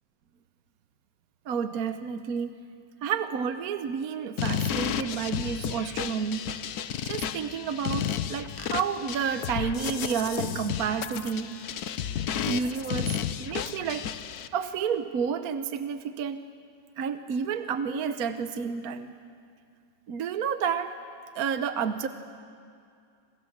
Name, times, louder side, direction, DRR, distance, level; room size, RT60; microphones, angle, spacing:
voice 1, 1.5-2.5 3.0-6.5 7.0-11.5 12.5-14.1 14.5-16.4 17.0-19.1 20.1-20.9 21.3-22.1, right 7 dB, 60° right, 9 dB, 1.2 m, -30 dB
sound 1, 4.4-14.5, left 9 dB, 65° left, 1.3 m, -32 dB
28.0 x 27.0 x 7.3 m, 2.3 s
omnidirectional pair, 1.9 m